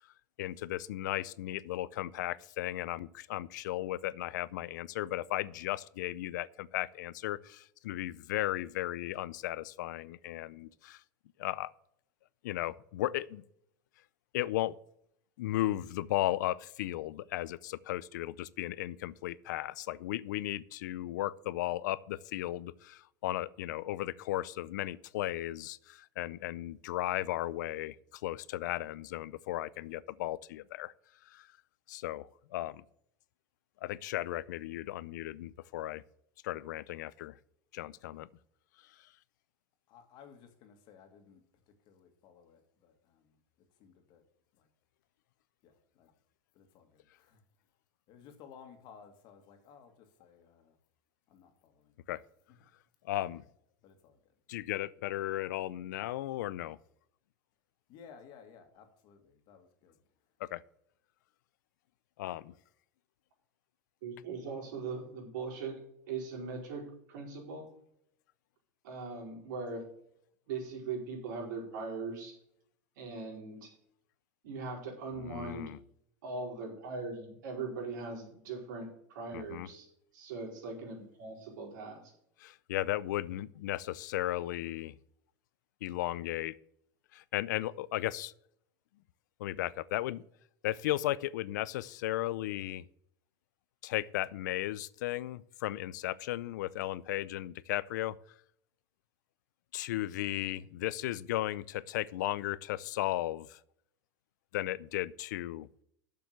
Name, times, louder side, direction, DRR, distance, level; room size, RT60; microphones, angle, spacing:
voice 1, 0.4-11.0 11.4-11.7 12.4-13.4 14.3-14.7 15.4-30.9 31.2-31.5 31.9-32.8 33.8-36.0 36.4-37.4 37.7-38.3 39.0-39.1 52.1-52.2 53.0-53.4 54.5-56.8 60.4-60.6 62.2-62.5 75.2-75.8 79.3-79.7 82.4-84.9 85.8-86.5 87.1-88.3 89.4-90.2 90.6-92.8 93.8-98.2 99.7-103.6 104.5-105.7, left 15 dB, 85° left, 0.5 m, -35 dB
voice 2, 39.9-44.2 44.5-44.7 45.6-46.1 46.5-47.4 48.1-50.8 51.3-52.0 52.5-52.7 53.8-54.3 57.9-60.0, left 7 dB, 50° left, 2.0 m, -57 dB
voice 3, 64.0-65.8 66.1-67.7 68.8-69.9 70.5-72.4 72.9-73.7 74.4-75.7 76.2-79.9 80.1-82.1, right 4 dB, 80° right, 4.9 m, -40 dB
7.6 x 7.0 x 8.0 m
supercardioid pair, 130°, 10 cm